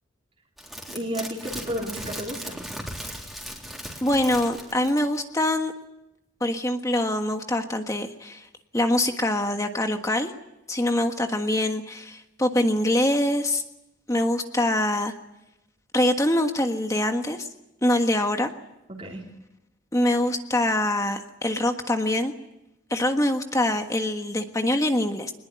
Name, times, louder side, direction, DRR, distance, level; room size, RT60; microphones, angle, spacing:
sound 1, 0.6-5.2 5.5-5.6, equal, ahead, 3.6 m, -37 dB
voice 1, 0.9-2.6 18.9-19.2, equal, 30° right, -2 dB, 3.4 m, -32 dB
voice 2, 4.0-5.7 6.4-8.5 8.7-10.3 10.7-13.6 14.1-15.1 15.9-17.5 17.8-18.5 19.9-22.3 22.9-25.3, left 1 dB, 15° left, 5 dB, 1.5 m, -24 dB
23.5 x 20.5 x 9.6 m, 0.89 s
head